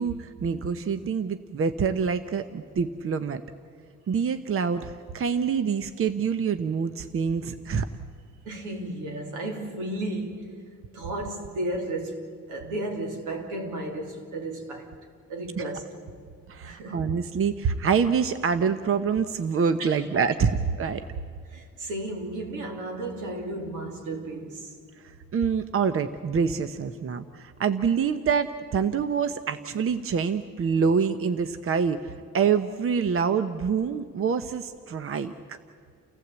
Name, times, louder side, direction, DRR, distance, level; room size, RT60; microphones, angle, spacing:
voice 1, 0.0-3.4 4.1-7.9 15.6-15.7 16.5-21.0 25.3-35.6, right 6 dB, 45° right, 0.9 m, -26 dB
voice 2, 8.5-10.6 10.9-15.0 15.3-15.9 16.6-17.1 19.8-20.1 21.5-24.7, right 1 dB, 90° right, 3.3 m, -34 dB
30.0 x 15.0 x 8.2 m
cardioid pair, 90°, 30 cm